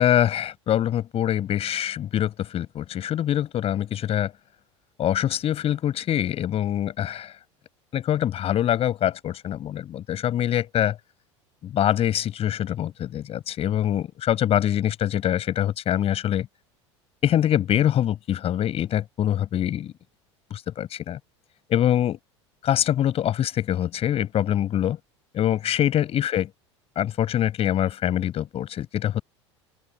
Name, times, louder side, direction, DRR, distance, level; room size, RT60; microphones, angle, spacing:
voice 1, 0.0-4.3 5.0-7.3 7.9-11.0 11.6-16.4 17.2-19.9 20.5-21.2 21.7-22.2 22.6-25.0 25.3-26.5 27.0-29.2, left 11 dB, 40° left, 6.4 m, -24 dB
open air
hypercardioid pair, 75°, 15 cm